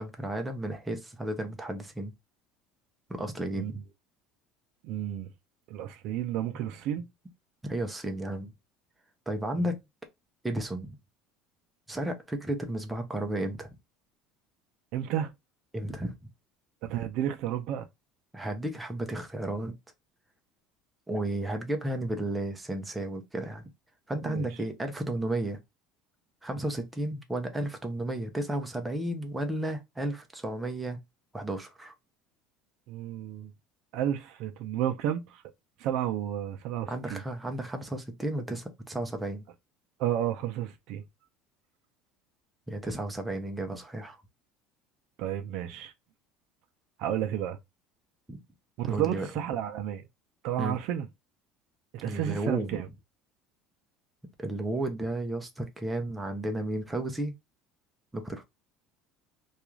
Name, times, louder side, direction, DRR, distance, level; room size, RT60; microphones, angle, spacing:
voice 1, 0.0-2.1 3.1-3.8 7.6-8.5 9.3-9.8 10.4-11.0 11.9-13.7 15.7-16.1 18.3-19.7 21.1-23.7 24.1-25.6 26.4-31.0 31.3-31.9 36.9-39.4 42.7-44.2 48.3-48.4 48.9-49.3 50.6-50.8 52.0-52.8 54.4-57.3 58.1-58.4, right 1 dB, 5° right, 0.5 m, -33 dB
voice 2, 4.8-5.3 5.7-7.1 9.6-9.7 14.9-15.3 16.8-17.9 24.2-24.5 32.9-33.5 33.9-35.4 35.8-37.2 40.0-41.0 45.2-45.9 47.0-47.6 48.8-50.0 50.4-51.1 51.9-52.9, right 11 dB, 60° right, 0.4 m, -31 dB
2.4 x 2.4 x 2.9 m
cardioid pair, 160°, 0 cm